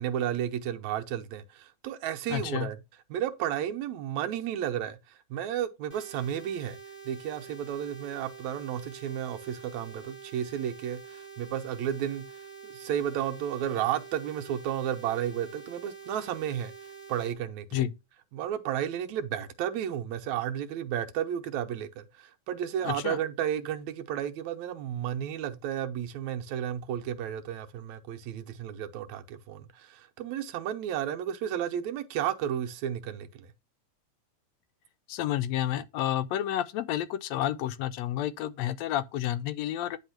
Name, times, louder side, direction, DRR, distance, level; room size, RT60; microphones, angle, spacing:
voice 1, 0.0-2.8 3.1-6.8 7.1-12.2 12.6-16.7 17.1-17.8 18.3-33.5, right 10 dB, 75° right, 2.1 m, -32 dB
voice 2, 2.3-2.7 17.7-17.9 22.8-23.2 35.1-40.0, left 12 dB, 80° left, 1.7 m, -30 dB
sound 1, 5.9-17.3, right 6 dB, 15° right, 2.0 m, -47 dB
10.0 x 3.5 x 5.8 m
omnidirectional pair, 3.4 m